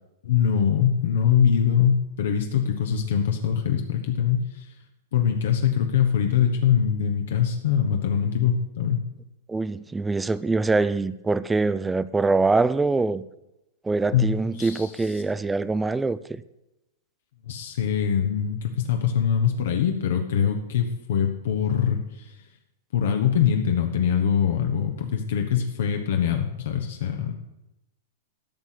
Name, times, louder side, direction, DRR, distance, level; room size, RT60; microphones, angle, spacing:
voice 1, 0.2-4.7 5.1-9.0 14.1-14.3 14.6-15.2 17.5-22.4 22.9-27.3, left 8 dB, 70° left, 1.2 m, -23 dB
voice 2, 9.5-13.2 13.8-16.4, right 3 dB, 10° right, 0.4 m, -24 dB
13.0 x 6.0 x 8.3 m
supercardioid pair, 155°, 0 cm